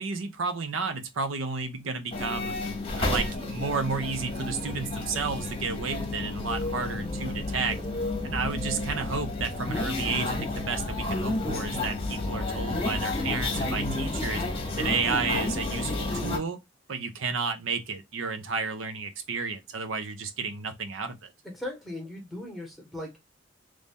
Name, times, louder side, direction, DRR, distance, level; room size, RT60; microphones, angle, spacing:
voice 1, 0.0-2.5 3.0-7.8 8.2-14.4 14.8-16.6 16.9-21.3, right 4 dB, 85° right, 0.7 m, -32 dB
sound 1, 2.1-16.4, left 2 dB, 30° left, 0.9 m, -31 dB
voice 2, 21.4-23.2, left 1 dB, ahead, 1.2 m, -38 dB
3.2 x 2.6 x 3.5 m
head